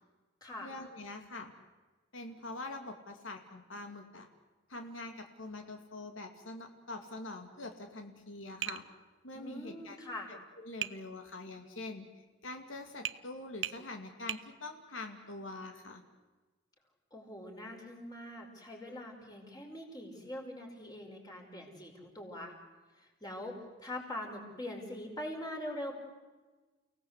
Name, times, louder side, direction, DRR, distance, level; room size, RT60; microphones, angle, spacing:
voice 1, 0.6-1.5 2.1-4.3 4.7-8.8 9.2-10.0 10.3-16.0, left 2 dB, 85° left, 5 dB, 2.4 m, -44 dB
Tap, 8.6-8.9 10.8-11.0 13.0-13.2 13.6-13.8 14.3-14.5, right 11 dB, 65° right, 0.8 m, -36 dB
voice 2, 9.3-10.3 17.1-22.5 23.2-25.9, left 1 dB, 20° left, 1 dB, 5.2 m, -43 dB
30.0 x 18.0 x 8.2 m, 1.3 s
head